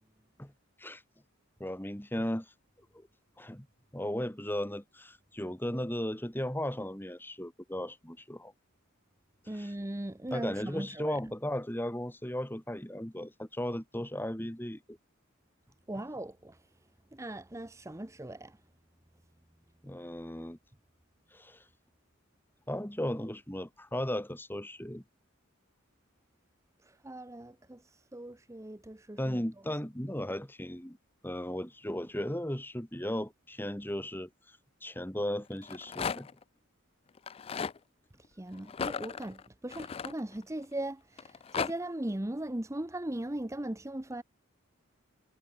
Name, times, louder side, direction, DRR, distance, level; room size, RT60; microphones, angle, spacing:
voice 1, 1.6-2.5 2.9-3.1 3.4-3.7 3.9-8.5 9.5-9.7 10.3-15.0 19.8-20.6 21.3-21.6 22.7-25.0 29.2-31.0 31.2-36.3, left 1 dB, 10° left, 2.1 m, -36 dB
voice 2, 9.5-11.2 15.9-16.6 17.1-18.6 26.8-29.4 38.3-44.2, right 1 dB, 15° right, 0.8 m, -39 dB
Rattle, 35.5-36.4 37.2-37.8 38.7-40.6 41.2-41.7, left 6 dB, 30° left, 0.3 m, -36 dB
head